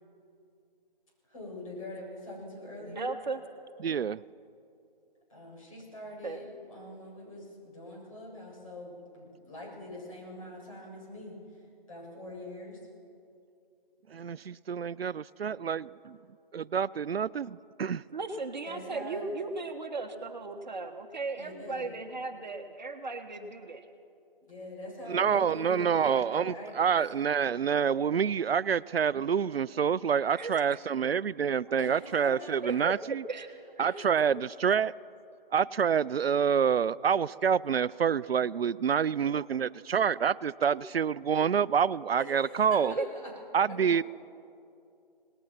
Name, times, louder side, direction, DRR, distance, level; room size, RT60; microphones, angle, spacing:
voice 1, 1.3-3.1 5.3-12.8 18.6-19.3 21.4-21.9 24.4-26.9 31.8-32.8 33.9-34.1 42.2-43.3, left 1 dB, 35° left, -4 dB, 7.6 m, -44 dB
voice 2, 2.8-3.4 6.2-6.4 18.1-23.9 30.3-30.8 32.6-32.9 33.3-34.3 39.4-39.5 40.0-40.1 40.7-40.8 42.9-43.1, right 3 dB, 50° right, 5 dB, 1.4 m, -37 dB
voice 3, 3.8-4.2 14.1-16.2 16.5-18.0 25.1-33.2 33.8-34.9 35.5-42.9 43.5-44.0, right 7 dB, 85° right, 19 dB, 0.5 m, -27 dB
26.5 x 19.0 x 5.9 m, 2.6 s
figure-of-eight pair, 165°, 29 cm